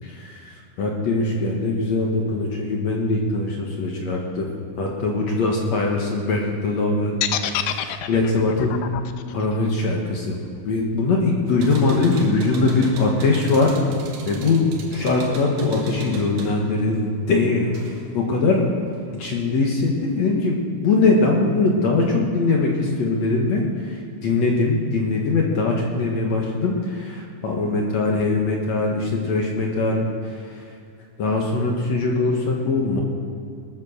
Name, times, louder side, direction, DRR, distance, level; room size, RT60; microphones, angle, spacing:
voice 1, 0.0-4.5 4.8-8.8 9.3-10.4 10.7-13.7 14.3-17.8 18.1-18.6 19.1-30.6 31.2-33.0, left 3 dB, 60° left, 0 dB, 2.0 m, -22 dB
sound 1, 7.2-11.3, left 12 dB, 80° left, 2.1 m, -28 dB
sound 2, 11.5-18.2 18.5-19.4, right 3 dB, 80° right, 3.5 m, -36 dB
19.5 x 7.5 x 6.5 m, 2.4 s
omnidirectional pair, 4.6 m